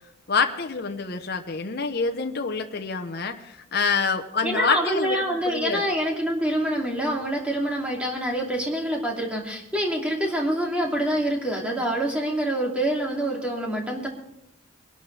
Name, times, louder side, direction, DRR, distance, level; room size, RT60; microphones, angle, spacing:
voice 1, 0.3-5.8, left 4 dB, 55° left, 5 dB, 0.9 m, -27 dB
voice 2, 4.4-14.1, right 1 dB, 5° right, -2 dB, 2.7 m, -26 dB
23.0 x 12.0 x 3.4 m, 0.83 s
head